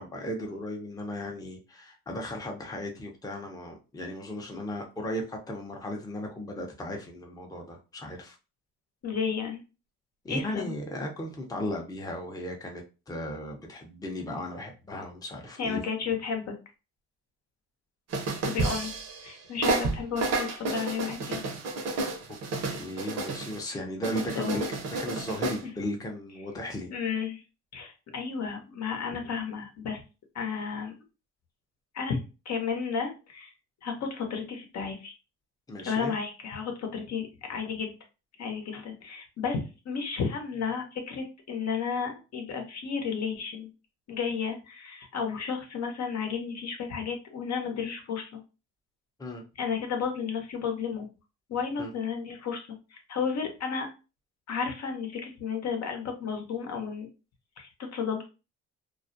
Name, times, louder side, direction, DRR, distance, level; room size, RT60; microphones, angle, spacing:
voice 1, 0.0-8.4 10.2-15.8 22.7-26.9 35.7-36.2 49.2-49.4 51.8-51.9, left 1 dB, 10° left, 0.6 m, -36 dB
voice 2, 9.0-9.6 10.3-10.7 15.6-16.5 18.4-21.4 23.7-23.8 24.3-24.6 25.6-25.7 26.9-27.4 27.7-30.0 30.3-30.9 31.9-33.5 33.8-35.1 35.8-38.0 38.4-43.7 44.1-48.4 49.6-51.1 51.5-52.6 52.9-53.9 54.5-57.1 57.6-58.3, left 6 dB, 60° left, 0.8 m, -32 dB
sound 1, 18.1-19.3 19.6-23.6 24.0-25.6, right 3 dB, 60° right, 0.7 m, -31 dB
2.3 x 2.0 x 2.6 m
cardioid pair, 90°, 30 cm